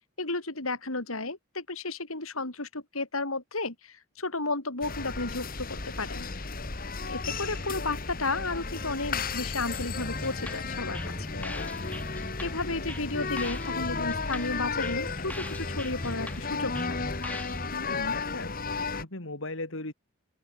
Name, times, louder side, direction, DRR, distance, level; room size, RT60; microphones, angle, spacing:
voice 1, 0.2-6.3 7.0-11.4 12.4-17.2, left 3 dB, 90° left, 5.2 m, -33 dB
sound 1, 4.8-19.0, left 4 dB, 45° left, 1.9 m, -34 dB
sound 2, 9.7-17.7, left 1 dB, 5° left, 1.8 m, -41 dB
voice 2, 11.3-12.0 17.7-18.5 18.8-19.9, left 2 dB, 70° left, 3.2 m, -38 dB
open air
head